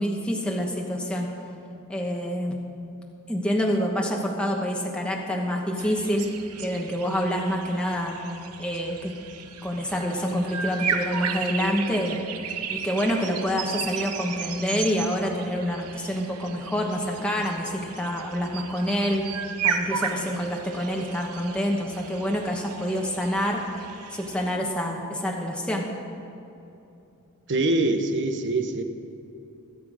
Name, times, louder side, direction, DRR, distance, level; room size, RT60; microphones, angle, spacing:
voice 1, 0.0-1.3 1.9-2.6 3.3-6.3 6.6-8.2 8.6-9.2 9.6-12.2 12.7-19.3 19.6-23.6 24.1-25.9, equal, 5° left, -1 dB, 1.1 m, -27 dB
sound 1, 5.8-24.6, right 7 dB, 90° right, 0.9 m, -35 dB
voice 2, 27.5-28.8, right 2 dB, 55° right, 6 dB, 1.1 m, -24 dB
23.0 x 8.1 x 5.0 m, 2.8 s
head